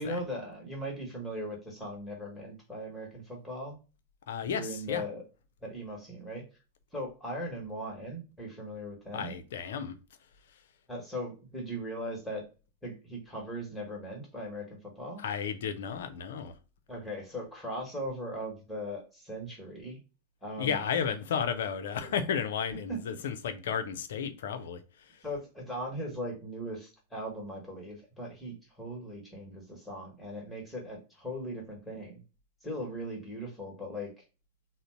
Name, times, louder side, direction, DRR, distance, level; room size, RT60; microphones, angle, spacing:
voice 1, 0.0-3.8 4.5-5.2 5.6-6.4 6.9-9.3 10.9-12.4 12.8-15.2 16.9-20.0 20.4-20.8 21.5-21.6 22.0-22.1 22.9-23.0 25.2-32.2 32.6-34.2, equal, 10° left, 1.2 m, -39 dB
voice 2, 4.3-5.0 9.1-9.9 15.2-16.5 20.6-24.8, left 7 dB, 60° left, 0.5 m, -33 dB
3.8 x 2.1 x 4.3 m
figure-of-eight pair, 90°, 0 cm